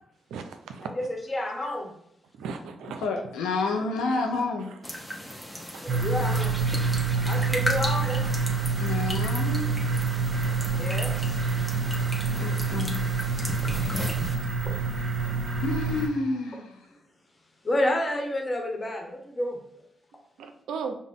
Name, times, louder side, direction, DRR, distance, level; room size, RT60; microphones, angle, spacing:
voice 1, 0.3-0.9 2.4-3.1 4.1-4.2 5.7-5.9 8.8-8.9 20.4-21.0, right 5 dB, 80° right, 7 dB, 0.3 m, -36 dB
voice 2, 0.8-1.9 5.8-6.6 7.3-8.3 10.7-11.4 14.6-14.8 17.6-19.6, left 1 dB, 35° left, 2 dB, 1.1 m, -30 dB
voice 3, 3.0-4.7 8.8-9.7 12.3-13.0 15.6-16.8, left 3 dB, 85° left, 2 dB, 0.5 m, -29 dB
sound 1, 4.8-14.3, equal, 5° left, 1.0 m, -36 dB
sound 2, 5.9-16.1, right 4 dB, 55° right, 0.8 m, -27 dB
5.1 x 2.1 x 3.6 m, 0.71 s
supercardioid pair, 45°, 0 cm